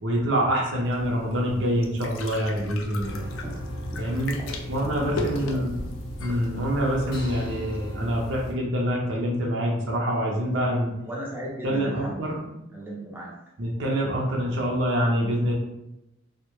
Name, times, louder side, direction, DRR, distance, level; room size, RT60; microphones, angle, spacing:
voice 1, 0.0-3.2 4.0-4.3 4.7-5.7 6.2-10.9 11.6-12.4 13.6-15.5, equal, 60° right, -1 dB, 0.5 m, -26 dB
sound 1, 0.8-7.6, left 2 dB, 80° left, 0.4 m, -36 dB
sound 2, 3.0-8.5, equal, 50° left, 0.7 m, -37 dB
voice 2, 4.4-5.6 11.1-12.3 12.7-13.3, right 1 dB, 10° right, -5 dB, 0.4 m, -37 dB
2.1 x 2.0 x 2.9 m, 0.88 s
head